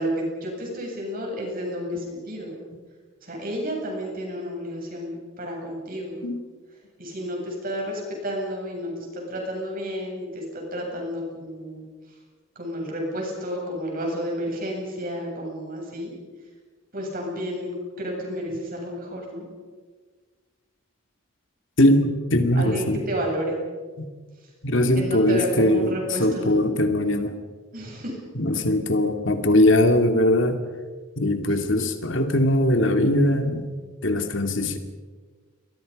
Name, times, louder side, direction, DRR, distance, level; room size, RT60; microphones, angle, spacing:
voice 1, 0.0-2.5 3.2-6.2 7.0-11.9 12.6-16.1 16.9-19.5 22.6-23.6 24.9-26.5 27.7-28.2, equal, 45° right, 0 dB, 7.9 m, -31 dB
voice 2, 21.8-23.0 24.0-24.1 24.6-27.3 28.3-30.6 31.2-33.7 34.0-34.8, left 1 dB, 65° left, 6 dB, 2.5 m, -21 dB
29.0 x 23.0 x 5.4 m, 1.4 s
head